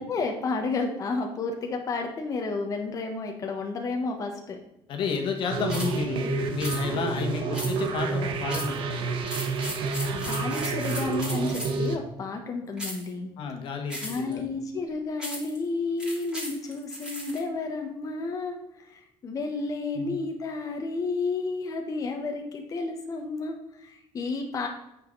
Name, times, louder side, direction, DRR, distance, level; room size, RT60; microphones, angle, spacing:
voice 1, 0.0-4.6 10.1-13.3 14.0-18.6 18.8-24.7, left 3 dB, 35° left, 2 dB, 1.3 m, -31 dB
voice 2, 4.9-8.8 13.4-14.4 20.0-20.1, left 5 dB, 60° left, 3 dB, 1.9 m, -31 dB
sound 1, 5.5-12.0, right 4 dB, 60° right, 1.2 m, -29 dB
sound 2, 5.7-6.0 6.6-6.8 7.5-8.0 8.5-8.8 9.2-11.9 12.8-13.1 13.9-14.3 15.2-15.6 16.0-17.4, equal, 10° right, 3.1 m, -36 dB
8.9 x 6.8 x 4.1 m, 0.83 s
cardioid pair, 140°, 10 cm